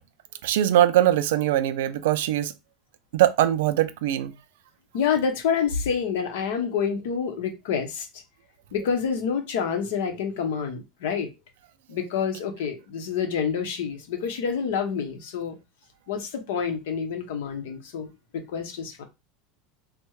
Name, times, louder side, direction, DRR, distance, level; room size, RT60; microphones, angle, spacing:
voice 1, 0.4-2.5 3.1-4.3, right 12 dB, 85° right, 0.4 m, -21 dB
voice 2, 4.9-8.1 8.7-11.3 11.9-15.6 16.1-19.0, left 6 dB, 80° left, 0.9 m, -28 dB
3.4 x 2.2 x 3.1 m
supercardioid pair, 175°, 0 cm